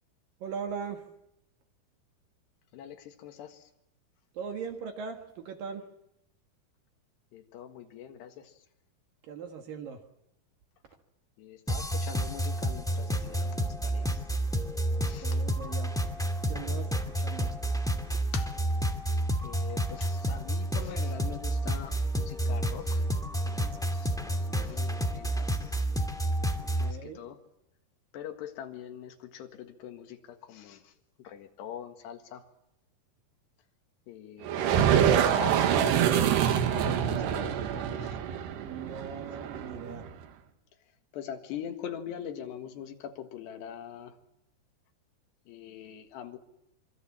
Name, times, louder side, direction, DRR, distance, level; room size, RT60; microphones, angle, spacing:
voice 1, 0.4-1.1 4.3-5.9 9.2-10.0 15.2-16.1 16.5-17.5 26.6-27.2 38.6-40.1, right 6 dB, 60° right, 5 dB, 3.2 m, -40 dB
voice 2, 2.7-3.7 7.3-8.5 11.4-14.2 15.1-15.4 18.3-18.5 18.8-18.9 19.4-23.0 23.5-25.7 26.8-27.4 28.1-30.9 31.2-32.4 34.1-38.2 41.1-44.2 45.5-46.4, left 9 dB, 85° left, 6 dB, 3.8 m, -43 dB
sound 1, 11.7-26.9, right 1 dB, ahead, 1.3 m, -30 dB
sound 2, 34.4-40.1, right 9 dB, 80° right, 3.7 m, -26 dB
26.0 x 25.0 x 7.4 m, 0.81 s
omnidirectional pair, 4.7 m